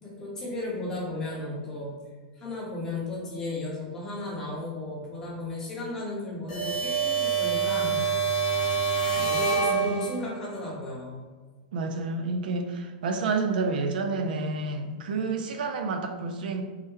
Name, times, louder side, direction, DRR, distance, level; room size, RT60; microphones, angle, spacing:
voice 1, 0.0-2.0 2.4-8.1 9.1-11.2, left 2 dB, 10° left, -5 dB, 0.7 m, -34 dB
sound 1, 6.5-10.4, right 5 dB, 55° left, 0.9 m, -26 dB
voice 2, 11.7-16.6, right 3 dB, 75° right, 6 dB, 0.3 m, -29 dB
3.3 x 2.1 x 3.1 m, 1.4 s
supercardioid pair, 170°, 5 cm